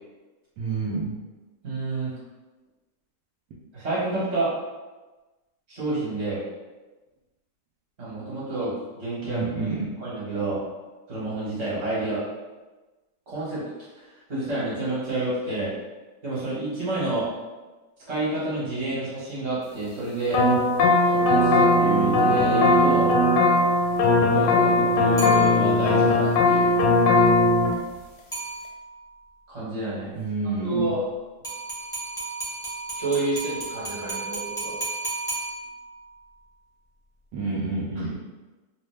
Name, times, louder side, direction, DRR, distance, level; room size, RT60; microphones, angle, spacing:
voice 1, 0.6-1.2 9.2-9.8 30.1-30.9 37.3-38.1, right 3 dB, 75° right, -6 dB, 1.1 m, -28 dB
voice 2, 1.6-2.1 3.7-4.5 5.7-6.4 8.0-9.4 10.0-10.6 11.1-12.2 13.3-13.6 13.9-15.7 16.2-17.3 18.1-20.5 21.1-23.1 24.1-26.7 29.5-30.1 30.4-31.0 32.9-34.8, right 2 dB, 40° right, -9 dB, 1.4 m, -29 dB
sound 1, 20.3-27.7, left 2 dB, 90° left, 1.2 m, -19 dB
sound 2, 25.2-26.0 28.3-29.1 31.4-36.1, right 3 dB, 5° left, 0.5 m, -34 dB
3.1 x 2.1 x 3.2 m, 1.2 s
omnidirectional pair, 1.9 m